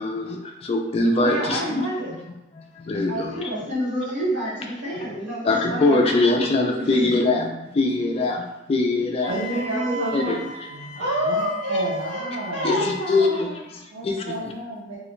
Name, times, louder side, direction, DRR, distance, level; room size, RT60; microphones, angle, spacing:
voice 1, 0.0-1.9 2.5-3.5 4.9-5.0 5.4-9.3 10.1-10.4 12.6-14.2, left 2 dB, 30° left, 2 dB, 0.3 m, -23 dB
voice 2, 1.1-2.2 3.1-6.2 6.8-7.0 9.2-10.4 11.0-12.2 12.5-13.6, equal, 65° right, -14 dB, 1.0 m, -28 dB
Wind instrument woodwind instrument, 9.2-13.3, right 1 dB, 35° right, 1.1 m, -37 dB
voice 3, 9.3-13.0 13.9-15.0, right 1 dB, 90° right, -8 dB, 0.6 m, -32 dB
2.3 x 2.1 x 3.1 m, 0.93 s
head